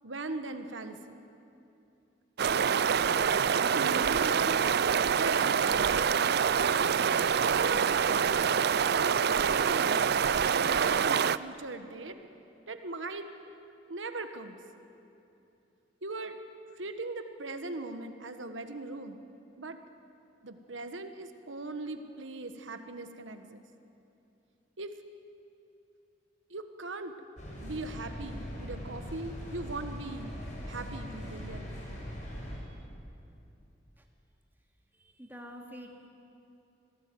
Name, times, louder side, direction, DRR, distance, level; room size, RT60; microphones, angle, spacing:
voice 1, 0.0-1.2 3.1-4.8 5.1-6.0 7.5-8.0 8.9-10.1 10.5-12.2 12.7-13.3 13.9-14.6 16.0-16.4 16.8-19.2 19.6-19.8 20.4-23.6 24.8-24.9 26.5-27.1 27.6-30.3 30.7-31.7, right 3 dB, 85° right, 8 dB, 1.4 m, -39 dB
sound 1, 2.4-11.4, right 7 dB, 60° right, 0.5 m, -26 dB
sound 2, 27.4-32.6, equal, 40° left, 6.7 m, -41 dB
voice 2, 34.9-36.1, equal, 10° right, 1 dB, 2.6 m, -47 dB
26.0 x 18.0 x 9.4 m, 2.8 s
head